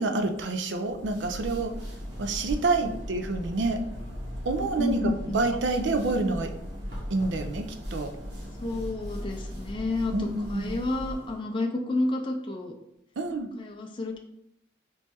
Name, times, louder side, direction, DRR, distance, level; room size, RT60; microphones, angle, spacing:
voice 1, 0.0-1.7 2.2-3.8 4.5-6.5 7.1-8.1 10.1-10.8 13.2-13.5, right 3 dB, 75° right, 6 dB, 0.5 m, -28 dB
sound 1, 0.9-11.4, equal, 55° right, 1.4 m, -38 dB
voice 2, 4.8-5.4 8.6-12.7 13.6-14.2, left 2 dB, 25° left, 2 dB, 0.4 m, -30 dB
4.3 x 3.1 x 3.4 m, 0.78 s
head